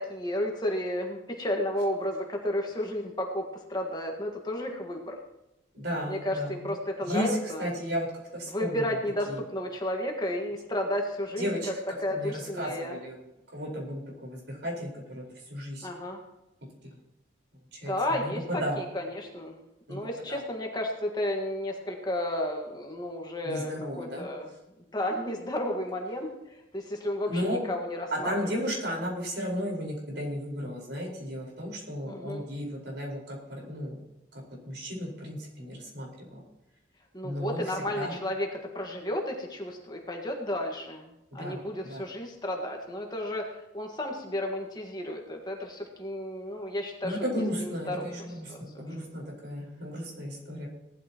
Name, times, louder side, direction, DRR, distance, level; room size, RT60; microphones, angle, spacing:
voice 1, 0.0-5.2 6.1-7.7 8.5-11.7 12.0-13.0 15.8-16.2 17.9-19.6 19.9-24.5 24.9-28.6 32.1-32.4 37.1-48.9, left 1 dB, 25° left, 1 dB, 1.6 m, -33 dB
voice 2, 5.7-6.7 7.0-8.1 8.3-9.0 9.3-9.4 11.4-11.7 12.1-13.2 13.5-15.9 16.8-16.9 17.7-17.9 18.2-18.8 19.9-20.0 20.3-20.4 23.4-24.2 27.3-27.6 28.1-34.0 34.6-36.4 37.2-37.6 37.9-38.2 41.4-42.0 47.0-50.7, equal, 70° right, -1 dB, 4.8 m, -34 dB
18.0 x 12.5 x 3.0 m, 0.90 s
head